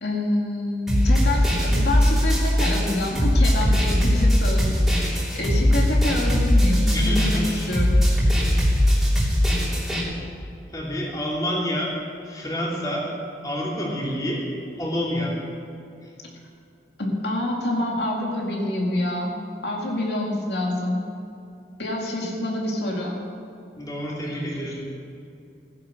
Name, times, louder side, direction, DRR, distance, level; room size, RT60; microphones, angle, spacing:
voice 1, 0.0-8.0 17.0-19.3 19.6-21.0 21.8-23.2, left 1 dB, 70° left, -1 dB, 2.3 m, -27 dB
sound 1, 0.9-10.0, equal, ahead, 3.0 m, -20 dB
voice 2, 6.9-7.8 10.7-11.9 12.3-13.1 13.4-14.4 14.7-15.4 23.8-24.8, equal, 20° left, -4 dB, 2.8 m, -28 dB
16.0 x 11.0 x 6.5 m, 2.6 s
head